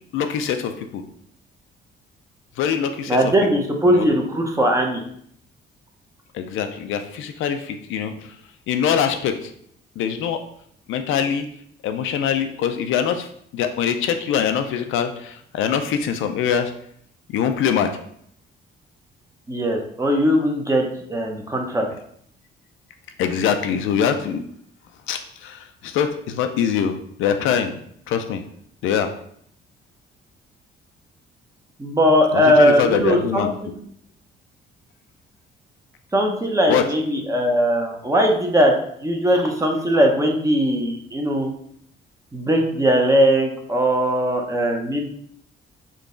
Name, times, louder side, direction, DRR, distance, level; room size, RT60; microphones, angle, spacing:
voice 1, 0.1-1.0 2.6-3.2 3.9-4.1 6.3-8.3 8.7-9.4 10.0-10.4 10.9-11.5 11.8-13.3 13.5-16.7 17.3-17.9 23.2-24.4 25.1-27.7 28.1-28.4 28.8-29.1 32.3-33.5 36.7-36.8, left 8 dB, 80° left, 7 dB, 0.4 m, -23 dB
voice 2, 3.1-5.0 19.5-20.8 21.1-21.9 31.8-33.8 36.1-38.7 39.0-41.5 42.3-45.0, equal, 15° right, 1 dB, 0.7 m, -19 dB
3.8 x 2.3 x 3.7 m, 0.66 s
cardioid pair, 90°, 20 cm